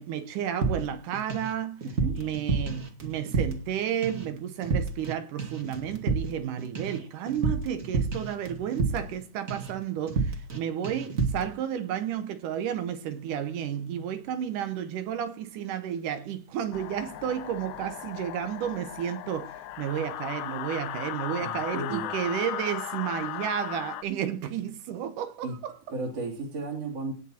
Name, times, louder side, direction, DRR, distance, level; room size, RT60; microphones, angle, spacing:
voice 1, 0.0-1.8 2.2-25.7, right 9 dB, 80° right, 2.6 m, -32 dB
sound 1, 0.6-1.5 1.8-3.8 4.0-4.3 4.6-5.1 5.4-9.2 9.5-9.8 10.1-10.6 10.8-11.5, right 4 dB, 30° right, 2.2 m, -30 dB
sound 2, 16.7-24.0, left 12 dB, 75° left, 2.2 m, -37 dB
voice 2, 21.4-22.2 25.4-25.6 25.9-27.1, right 3 dB, 50° right, 3.4 m, -34 dB
18.0 x 6.6 x 4.3 m
omnidirectional pair, 3.6 m